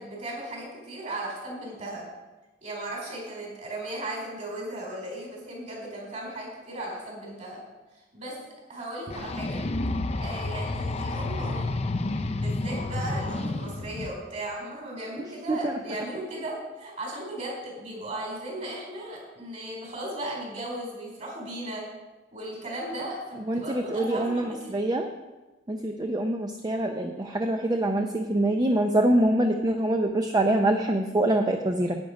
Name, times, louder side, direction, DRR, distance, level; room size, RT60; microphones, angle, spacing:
voice 1, 0.0-2.0 2.6-7.6 8.1-8.4 8.7-9.6 10.1-21.8 22.3-24.9, right 1 dB, 40° right, -2 dB, 4.5 m, -36 dB
sound 1, 9.1-14.1, left 2 dB, 35° left, 0.6 m, -30 dB
voice 2, 23.5-25.1 25.7-32.0, right 1 dB, 20° right, 4 dB, 0.6 m, -25 dB
10.5 x 9.2 x 5.1 m, 1.1 s
head